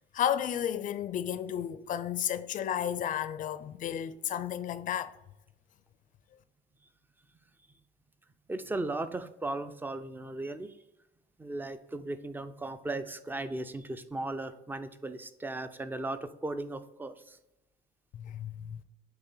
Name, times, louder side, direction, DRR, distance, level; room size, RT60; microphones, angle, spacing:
voice 1, 0.1-5.2 18.1-18.8, left 10 dB, 50° left, 0.5 m, -32 dB
voice 2, 8.5-10.7 11.4-17.4, right 2 dB, 10° right, 0.5 m, -37 dB
8.1 x 3.3 x 3.9 m
cardioid pair, 110°, 17 cm